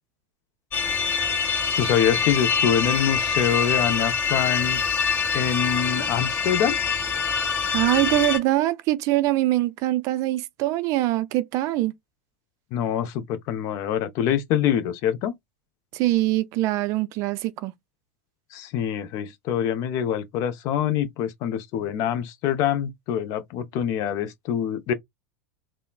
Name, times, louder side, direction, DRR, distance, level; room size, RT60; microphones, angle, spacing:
sound 1, 0.7-8.4, left 6 dB, 30° left, 1.1 m, -25 dB
voice 1, 1.8-4.8 5.3-6.8 12.7-15.3 18.5-24.9, left 9 dB, 45° left, 0.5 m, -25 dB
voice 2, 7.7-11.9 15.9-17.7, right 16 dB, 45° right, 0.4 m, -23 dB
3.0 x 2.0 x 2.3 m
figure-of-eight pair, 85°, 8 cm